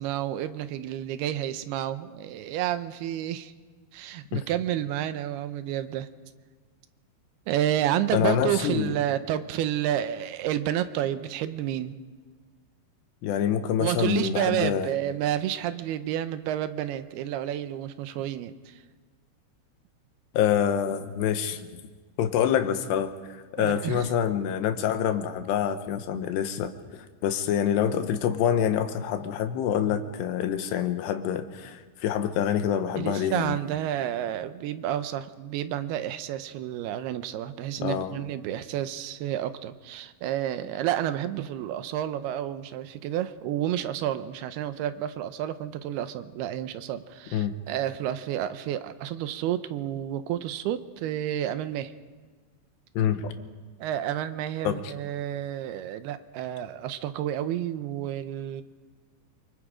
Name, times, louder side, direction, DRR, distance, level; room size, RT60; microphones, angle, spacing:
voice 1, 0.0-3.5 3.9-6.1 7.5-12.0 13.8-18.8 23.6-24.1 33.0-51.9 53.8-58.6, right 11 dB, 75° right, 11 dB, 2.7 m, -30 dB
voice 2, 8.1-9.0 13.2-14.9 20.3-21.7 22.2-33.6 37.8-38.1 47.3-47.5 53.0-53.3 54.6-54.8, left 9 dB, 80° left, 9 dB, 3.3 m, -26 dB
28.0 x 24.0 x 5.0 m, 1.4 s
omnidirectional pair, 4.8 m